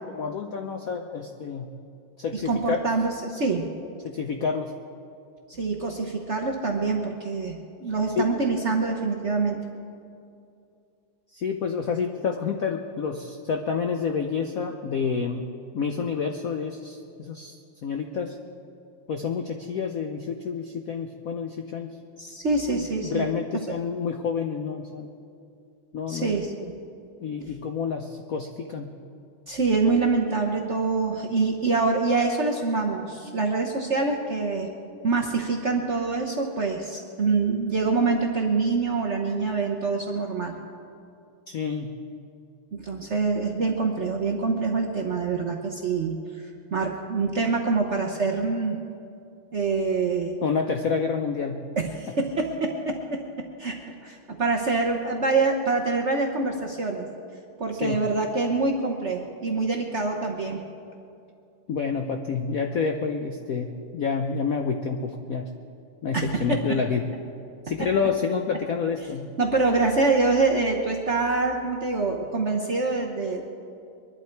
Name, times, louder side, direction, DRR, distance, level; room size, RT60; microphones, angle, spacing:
voice 1, 0.1-1.7 2.2-2.9 4.0-4.7 8.1-8.3 11.3-15.5 15.7-18.4 19.1-21.9 23.0-25.1 25.9-26.3 27.2-29.0 41.5-42.0 50.4-51.6 57.8-58.0 61.7-65.5 66.0-67.0 67.7-69.3, left 5 dB, 70° left, 4 dB, 0.8 m, -28 dB
voice 2, 2.5-3.7 5.5-9.6 22.2-23.2 26.1-26.7 29.5-34.7 35.0-40.5 42.7-48.8 49.5-50.4 51.8-53.2 53.6-53.7 54.0-57.1 57.6-60.6 66.1-66.6 69.4-73.4, right 3 dB, 50° right, 0 dB, 0.9 m, -25 dB
23.0 x 11.5 x 4.6 m, 2.5 s
omnidirectional pair, 2.4 m